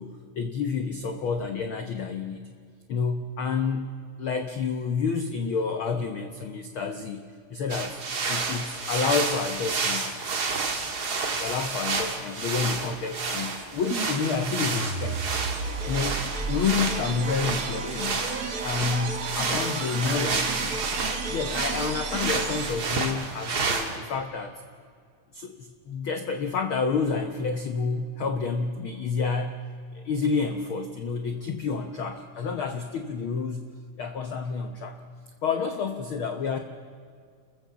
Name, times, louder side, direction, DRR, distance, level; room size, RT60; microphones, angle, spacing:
voice 1, 0.0-2.5 2.9-7.2 7.5-8.0 8.3-10.2 10.8-10.9 11.4-15.3 15.9-18.3 18.6-20.8 21.3-24.6 25.3-29.6 29.9-33.7 34.0-35.0 35.4-36.6, left 5 dB, 75° left, 7 dB, 1.2 m, -29 dB
sound 1, 7.7-24.0, right 4 dB, 40° right, 1.7 m, -30 dB
sound 2, 13.9-23.0, right 4 dB, 55° right, 1.0 m, -33 dB
29.0 x 15.0 x 7.0 m, 2.1 s
omnidirectional pair, 3.7 m